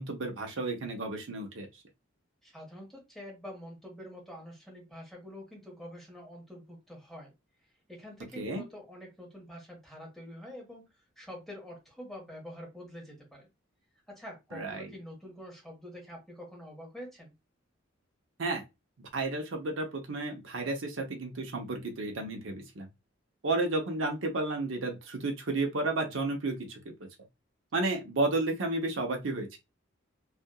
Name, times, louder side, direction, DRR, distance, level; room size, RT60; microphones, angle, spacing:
voice 1, 0.0-1.8 8.4-8.6 14.5-14.9 18.4-18.6 19.0-22.9 23.4-27.1 27.7-29.6, right 2 dB, 70° right, 0.7 m, -32 dB
voice 2, 2.4-7.3 7.9-10.8 11.2-13.5 14.1-17.3, equal, ahead, 1.3 m, -46 dB
2.8 x 2.4 x 2.2 m
head